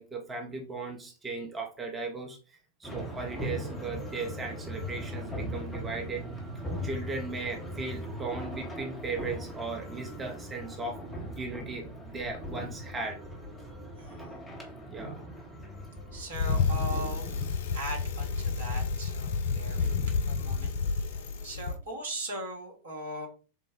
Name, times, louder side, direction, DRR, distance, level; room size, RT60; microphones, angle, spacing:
voice 1, 0.0-6.2 6.8-11.0 11.4-13.2 14.9-15.2 19.8-20.1, right 3 dB, 15° right, 1 dB, 0.6 m, -37 dB
sound 1, 2.8-17.5, equal, 10° left, 0.9 m, -39 dB
voice 2, 14.0-14.3 16.1-17.3 17.7-23.3, right 2 dB, 65° right, 2 dB, 1.0 m, -40 dB
Bicycle, 16.3-21.8, left 4 dB, 55° left, 0.4 m, -30 dB
3.3 x 2.1 x 3.5 m, 0.37 s
figure-of-eight pair, 90°, 0 cm